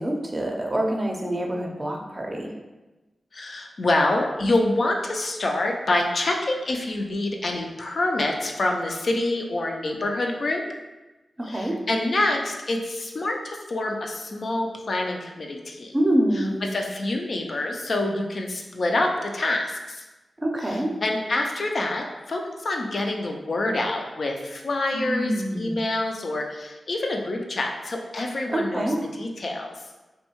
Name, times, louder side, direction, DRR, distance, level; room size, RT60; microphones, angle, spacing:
voice 1, 0.0-2.5 11.4-11.8 15.9-16.6 20.4-20.9 24.9-25.8 28.5-29.0, right 1 dB, 30° right, 1 dB, 0.5 m, -26 dB
voice 2, 3.3-10.6 11.5-15.9 16.7-20.0 21.0-28.9 29.2-29.7, left 2 dB, 65° left, 2 dB, 0.3 m, -26 dB
2.6 x 2.2 x 2.8 m, 1.1 s
cardioid pair, 40°, 0 cm